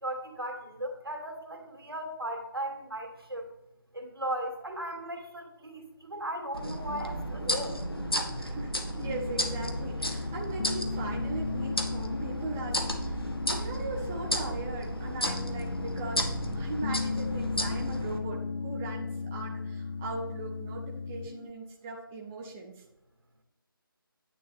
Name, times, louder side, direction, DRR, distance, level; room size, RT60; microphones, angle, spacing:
voice 1, 0.0-3.5 3.9-7.8, right 1 dB, 85° right, 4 dB, 2.4 m, -37 dB
sound 1, 6.5-18.2, equal, 90° left, 1.7 m, -33 dB
voice 2, 8.3-22.8, right 3 dB, 5° right, -1 dB, 0.3 m, -39 dB
Piano, 9.0-21.5, left 4 dB, 55° left, 0.5 m, -36 dB
10.0 x 9.2 x 3.4 m, 0.87 s
figure-of-eight pair, 155°, 12 cm